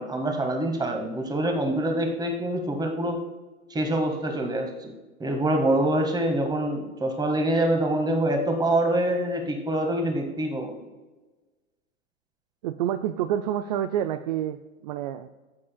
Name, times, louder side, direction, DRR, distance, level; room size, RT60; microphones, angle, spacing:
voice 1, 0.0-3.2 3.7-4.9 5.2-10.8, right 1 dB, 10° right, 3 dB, 1.6 m, -25 dB
voice 2, 12.6-14.6 14.8-15.3, right 11 dB, 35° right, 10 dB, 0.4 m, -28 dB
18.0 x 8.4 x 2.2 m, 1.2 s
figure-of-eight pair, 100°, 41 cm